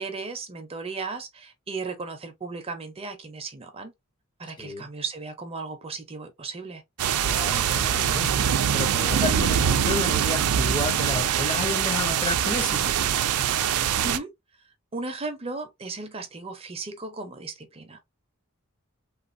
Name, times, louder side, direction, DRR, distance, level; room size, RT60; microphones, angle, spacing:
voice 1, 0.0-3.9 4.4-6.8 14.0-14.3 14.9-18.0, right 4 dB, 30° right, 0.6 m, -35 dB
voice 2, 4.6-4.9 7.2-13.0, left 2 dB, 20° left, 0.7 m, -31 dB
sound 1, 7.0-14.2, right 9 dB, 90° right, 0.4 m, -23 dB
3.1 x 2.3 x 2.5 m
head